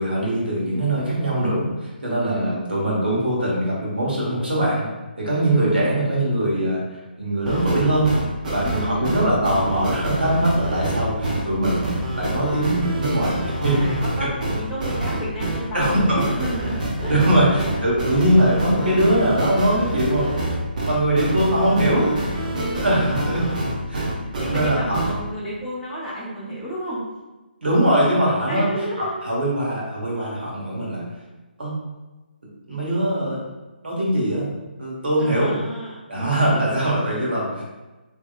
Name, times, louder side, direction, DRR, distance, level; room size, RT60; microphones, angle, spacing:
voice 1, 0.0-4.9 5.2-8.1 8.5-11.9 12.1-13.4 13.6-13.9 15.7-16.2 17.1-20.3 20.9-22.1 22.8-23.4 23.9-24.1 24.4-25.0 27.6-28.7 29.0-31.0 31.6-31.7 32.7-33.4 33.8-34.5 34.8-35.5 36.1-37.6, right 1 dB, 70° right, -5 dB, 1.4 m, -21 dB
voice 2, 2.2-2.6 5.6-6.1 8.6-9.1 13.7-17.1 17.4-18.2 22.5-23.1 24.4-27.1 28.5-29.2 35.2-36.7, equal, ahead, -9 dB, 0.5 m, -32 dB
sound 1, 7.5-25.1, right 1 dB, 50° right, 0.7 m, -27 dB
3.2 x 2.7 x 2.5 m, 1.1 s
figure-of-eight pair, 145°, 6 cm